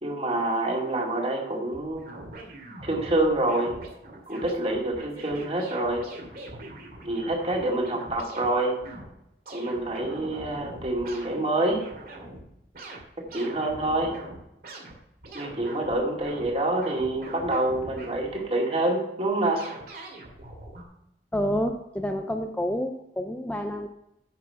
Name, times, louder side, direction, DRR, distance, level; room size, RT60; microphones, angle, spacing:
voice 1, 0.0-2.0 2.8-3.8 4.3-6.0 7.0-8.8 9.5-11.8 13.3-14.1 15.3-19.7, right 2 dB, 35° right, -1 dB, 2.3 m, -27 dB
sound 1, 1.7-8.5 8.8-9.1 9.5-11.3 11.7-12.5 12.7-16.5 16.8-18.4 19.5-20.8, right 1 dB, 55° right, 2.3 m, -42 dB
voice 2, 21.3-23.9, equal, 10° left, 4 dB, 0.5 m, -28 dB
9.5 x 5.9 x 5.7 m, 0.83 s
head